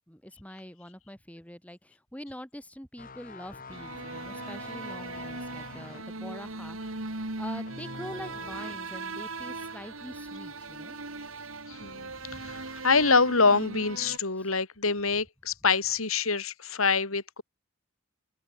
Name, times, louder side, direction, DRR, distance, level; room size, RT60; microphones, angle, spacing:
voice 1, 0.1-11.0 11.4-11.5 11.8-12.6 14.4-14.5, left 1 dB, 5° left, 4.7 m, -45 dB
sound 1, 3.0-9.0 9.3-9.6, left 3 dB, 45° left, 4.3 m, -46 dB
sound 2, 3.7-14.2, right 3 dB, 75° right, 3.3 m, -39 dB
voice 2, 11.7-17.4, left 4 dB, 90° left, 3.6 m, -26 dB
head